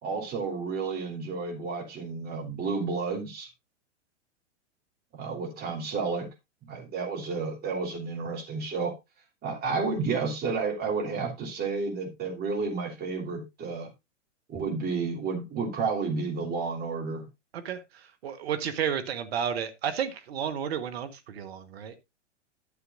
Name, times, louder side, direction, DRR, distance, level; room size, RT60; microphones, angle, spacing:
voice 1, 0.0-3.5 5.1-6.3 6.6-8.9 9.4-13.9 14.5-17.3, right 4 dB, 25° right, 2 dB, 3.3 m, -31 dB
voice 2, 17.5-21.9, right 8 dB, 55° right, 10 dB, 1.3 m, -32 dB
12.0 x 7.6 x 2.5 m, 0.22 s
figure-of-eight pair, 105°, 37 cm